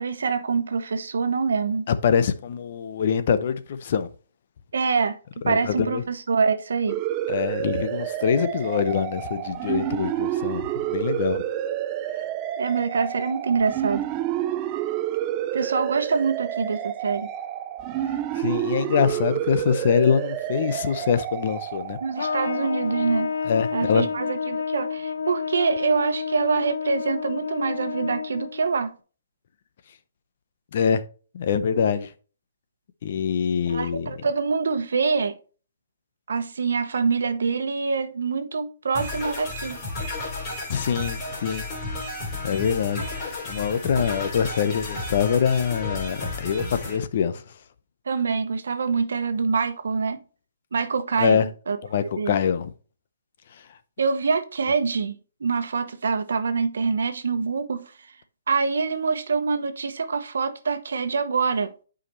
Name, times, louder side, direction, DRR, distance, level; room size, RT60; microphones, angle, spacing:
voice 1, 0.0-1.9 4.7-5.2 5.5-7.0 12.6-14.0 15.5-17.3 22.0-23.3 23.7-28.9 33.7-35.4 36.3-39.8 48.1-50.2 50.7-51.8 52.2-52.3 54.0-57.9 58.5-61.7, right 5 dB, 80° right, 1.0 m, -25 dB
voice 2, 1.9-4.1 5.4-6.0 7.3-11.4 18.0-22.0 23.4-24.0 30.7-31.0 31.3-32.1 33.0-34.1 40.7-41.7 42.3-47.4 51.2-51.5 51.9-52.7 53.5-53.6, left 7 dB, 50° left, 0.7 m, -24 dB
sound 1, 6.9-23.3, right 12 dB, 20° right, 0.4 m, -29 dB
Trumpet, 22.2-28.7, left 6 dB, 90° left, 0.8 m, -30 dB
sound 2, 38.9-47.0, left 2 dB, 25° left, 2.8 m, -33 dB
8.6 x 5.0 x 3.1 m
hypercardioid pair, 165°, 0 cm